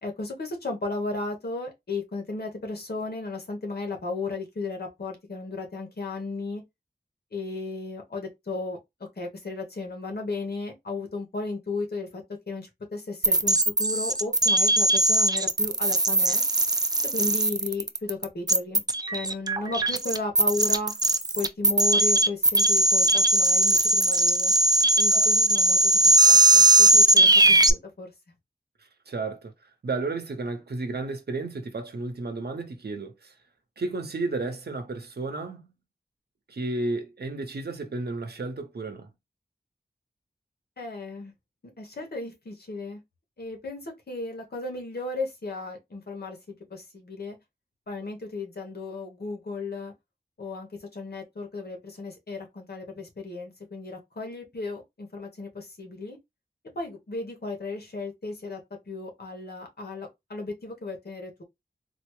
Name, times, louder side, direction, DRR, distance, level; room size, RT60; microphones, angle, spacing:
voice 1, 0.0-6.6 7.3-8.8 9.2-16.4 17.0-18.8 19.1-20.9 21.4-24.5 25.0-28.1 40.8-41.3 41.8-43.0 43.4-47.4 47.9-49.9 50.4-56.2 56.7-58.6 58.9-61.4, left 3 dB, 75° left, 1.2 m, -35 dB
sound 1, 13.2-27.7, right 2 dB, 25° right, 0.4 m, -20 dB
voice 2, 29.1-29.5 29.8-33.3 33.8-35.7 36.5-39.1, right 3 dB, 75° right, 0.8 m, -32 dB
4.0 x 2.0 x 3.0 m
wide cardioid pair, 75°, 17 cm